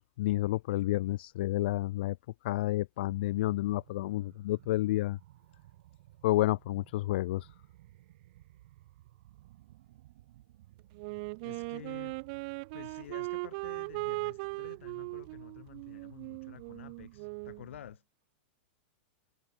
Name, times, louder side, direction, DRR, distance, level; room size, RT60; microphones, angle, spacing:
voice 1, 0.0-2.2 2.4-5.2 6.2-7.5, left 16 dB, 55° left, 0.8 m, -30 dB
sound 1, 3.0-18.0, right 16 dB, 55° right, 5.0 m, -58 dB
Wind instrument woodwind instrument, 11.0-17.7, right 31 dB, 35° right, 0.3 m, -39 dB
voice 2, 11.4-12.2 12.7-18.0, left 11 dB, 80° left, 4.6 m, -50 dB
supercardioid pair, 165°, 7 cm